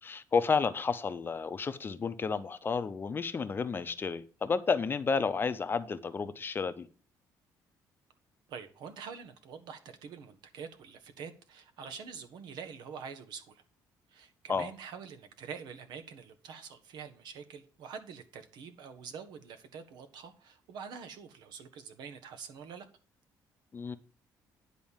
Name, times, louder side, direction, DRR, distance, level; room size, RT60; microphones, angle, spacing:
voice 1, 0.0-6.9 14.5-14.7 23.7-24.0, left 5 dB, 30° left, 0.7 m, -31 dB
voice 2, 8.5-13.6 14.1-22.9, right 6 dB, 75° right, 1.4 m, -46 dB
10.5 x 4.2 x 7.3 m
cardioid pair, 120°, 7 cm